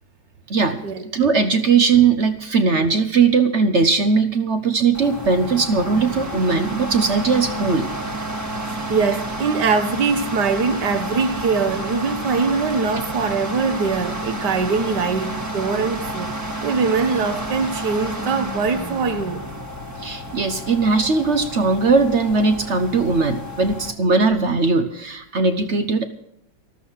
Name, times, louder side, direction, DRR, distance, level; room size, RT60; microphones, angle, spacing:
voice 1, 0.5-0.8 1.1-7.9 20.0-26.1, right 4 dB, 45° right, 1.0 m, -19 dB
sound 1, 4.9-23.9, right 1 dB, 10° right, 1.4 m, -30 dB
voice 2, 8.9-16.3 16.6-19.4, right 5 dB, 65° right, 1.8 m, -22 dB
13.5 x 13.5 x 5.6 m
omnidirectional pair, 2.0 m